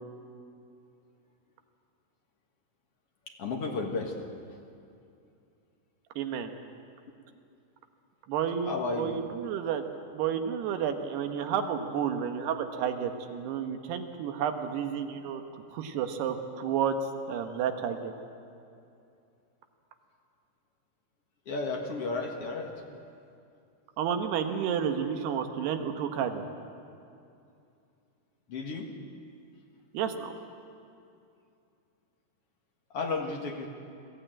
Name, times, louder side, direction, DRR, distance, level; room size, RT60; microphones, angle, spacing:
voice 1, 3.4-4.1 8.6-9.1 21.5-22.7 28.5-28.9 32.9-33.7, left 3 dB, 55° left, 1 dB, 1.8 m, -32 dB
voice 2, 6.2-6.5 8.3-9.8 10.1-15.4 15.7-17.0 17.3-18.1 24.0-26.5 29.9-30.3, right 8 dB, 80° right, 6 dB, 3.2 m, -31 dB
22.5 x 14.5 x 9.0 m, 2.6 s
omnidirectional pair, 4.7 m